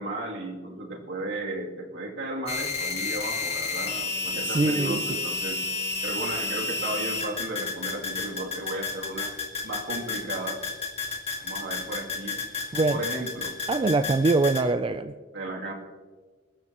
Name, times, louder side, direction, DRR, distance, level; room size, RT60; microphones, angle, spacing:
voice 1, 0.0-5.6 6.0-9.3 9.6-10.6 11.4-12.4 12.9-13.6 15.3-15.7, right 2 dB, 60° right, -1 dB, 2.9 m, -34 dB
sound 1, 2.5-14.6, left 3 dB, 30° left, 1.9 m, -31 dB
voice 2, 4.4-5.0 12.7-13.0 13.7-15.1, right 3 dB, 25° right, 10 dB, 0.4 m, -23 dB
23.0 x 13.0 x 3.0 m, 1.4 s
head